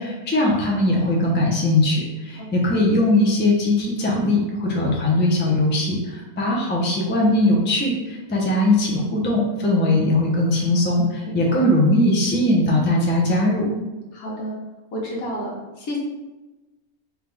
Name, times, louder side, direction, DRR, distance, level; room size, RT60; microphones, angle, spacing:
voice 1, 0.0-13.7, left 1 dB, 15° left, -3 dB, 0.4 m, -20 dB
voice 2, 11.2-11.7 14.1-14.6 14.9-15.5 15.8-16.0, equal, 85° left, -3 dB, 1.5 m, -30 dB
3.8 x 3.1 x 3.3 m, 1.1 s
omnidirectional pair, 1.5 m